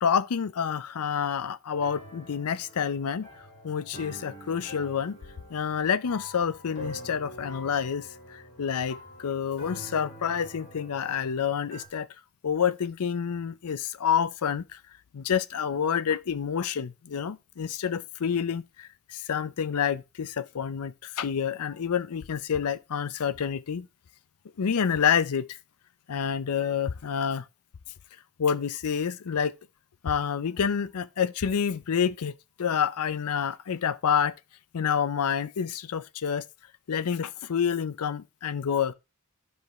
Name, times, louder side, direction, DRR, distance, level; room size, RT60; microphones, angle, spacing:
voice 1, 0.0-3.3 3.6-5.2 5.5-12.1 12.4-14.8 15.1-23.9 24.6-25.6 26.1-27.4 28.4-29.5 30.0-34.3 34.7-36.4 36.9-38.9, left 7 dB, 75° left, 0.5 m, -28 dB
sound 1, 1.7-11.9, equal, 55° left, 3.6 m, -45 dB
13.0 x 4.9 x 3.1 m
head